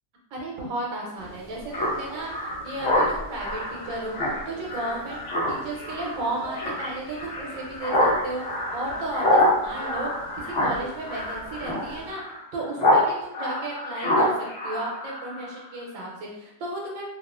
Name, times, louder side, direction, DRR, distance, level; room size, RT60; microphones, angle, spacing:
voice 1, 0.3-5.2 5.5-8.4 8.7-10.1 10.3-12.2 12.5-14.3 14.6-17.0, right 2 dB, 85° right, -2 dB, 1.0 m, -34 dB
sound 1, 1.2-12.1, equal, 30° right, 0.8 m, -43 dB
Speech synthesizer, 1.7-13.0 13.3-15.6, left 1 dB, 65° left, 1.0 m, -26 dB
2.6 x 2.3 x 2.3 m, 0.83 s
omnidirectional pair, 1.4 m